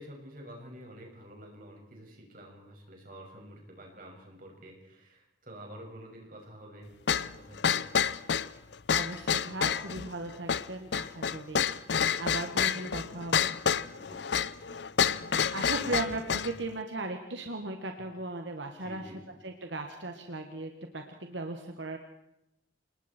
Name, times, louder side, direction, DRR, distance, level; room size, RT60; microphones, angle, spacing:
voice 1, 0.0-6.9 7.3-7.9 13.7-16.0 18.8-19.2, equal, 50° right, 0 dB, 6.5 m, -49 dB
sound 1, 7.1-16.6, left 7 dB, 70° left, 0.6 m, -29 dB
voice 2, 8.9-11.7 12.2-13.5 15.4-19.1 19.4-22.0, right 2 dB, 85° right, 4 dB, 1.8 m, -37 dB
28.0 x 20.0 x 4.6 m, 0.84 s
head